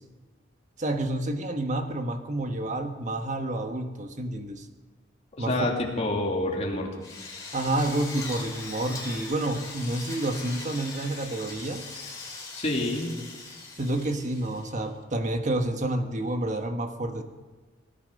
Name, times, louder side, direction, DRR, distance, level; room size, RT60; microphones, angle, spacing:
voice 1, 0.8-4.7 5.4-5.7 7.5-11.8 13.8-17.2, right 1 dB, 40° right, 6 dB, 1.4 m, -29 dB
voice 2, 5.4-6.9 12.5-13.1, left 1 dB, 35° left, 0 dB, 2.7 m, -27 dB
Drill, 7.0-14.9, left 3 dB, 20° left, 4.8 m, -40 dB
18.5 x 11.5 x 6.5 m, 1.3 s
head